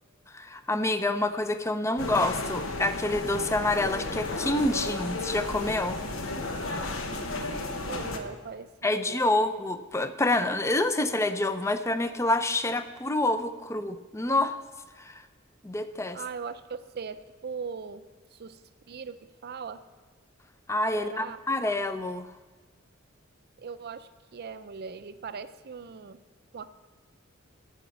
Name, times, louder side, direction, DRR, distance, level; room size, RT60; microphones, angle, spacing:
voice 1, 0.3-6.0 8.8-14.6 15.0-15.2 15.6-16.2 20.7-22.3, left 2 dB, 15° left, 10 dB, 0.5 m, -27 dB
sound 1, 2.0-8.2, left 2 dB, 80° left, 1.1 m, -33 dB
voice 2, 7.0-9.2 16.1-18.1 18.3-18.6 18.9-19.8 20.9-21.4 23.6-26.2 26.5-26.7, right 5 dB, 50° right, 12 dB, 0.5 m, -40 dB
14.0 x 5.1 x 7.0 m, 1.3 s
head